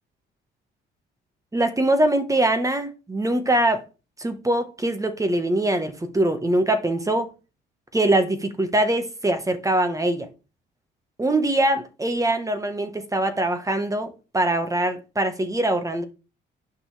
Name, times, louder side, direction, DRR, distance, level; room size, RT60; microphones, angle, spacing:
voice 1, 1.5-3.8 4.2-7.3 7.9-10.3 11.2-16.0, right 1 dB, 15° right, 1.4 m, -23 dB
9.3 x 6.0 x 3.4 m
cardioid pair, 90°, 20 cm